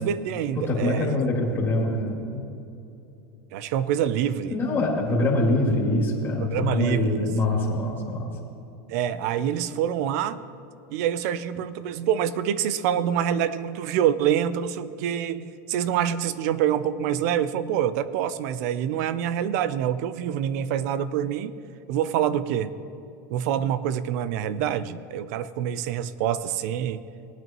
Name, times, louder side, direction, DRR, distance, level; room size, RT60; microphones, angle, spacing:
voice 1, 0.0-1.2 3.5-4.6 6.4-7.3 8.9-10.4 10.9-21.5 21.9-22.7 23.3-27.0, right 9 dB, 70° right, 15 dB, 0.6 m, -26 dB
voice 2, 0.7-2.4 4.5-8.3, left 2 dB, 25° left, -4 dB, 2.7 m, -24 dB
19.0 x 9.0 x 3.1 m, 2.7 s
supercardioid pair, 125°, 9 cm